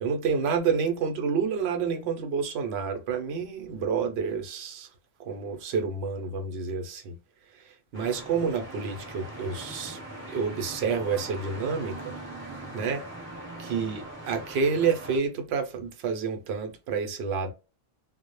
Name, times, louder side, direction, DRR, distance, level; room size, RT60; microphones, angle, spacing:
voice 1, 0.0-4.9 5.2-7.2 7.6-10.0 10.3-12.2 12.7-13.0 13.6-17.5, right 5 dB, 75° right, 0.8 m, -29 dB
sound 1, 7.9-15.2, right 1 dB, 10° right, 0.8 m, -41 dB
2.1 x 2.0 x 2.9 m
omnidirectional pair, 1.1 m